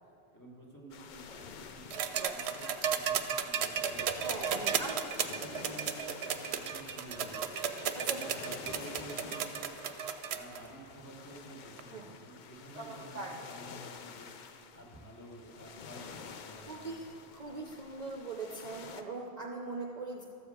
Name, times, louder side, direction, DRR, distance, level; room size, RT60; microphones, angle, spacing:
voice 1, 0.3-4.9 5.2-6.3 6.5-7.4 8.0-9.7 10.3-14.3 14.7-16.9 17.4-17.8, right 1 dB, 20° left, -2 dB, 1.5 m, -51 dB
sound 1, 0.9-19.0, left 6 dB, 55° left, 0.6 m, -49 dB
sound 2, 1.9-10.6 11.8-11.9, right 8 dB, 75° right, 0.8 m, -34 dB
voice 2, 4.2-5.3 7.9-8.2 9.2-9.4 11.9-12.0 12.7-13.3 16.7-17.0 17.3-20.2, right 3 dB, 45° right, 0 dB, 0.7 m, -41 dB
13.0 x 4.8 x 7.6 m, 2.8 s
omnidirectional pair, 1.1 m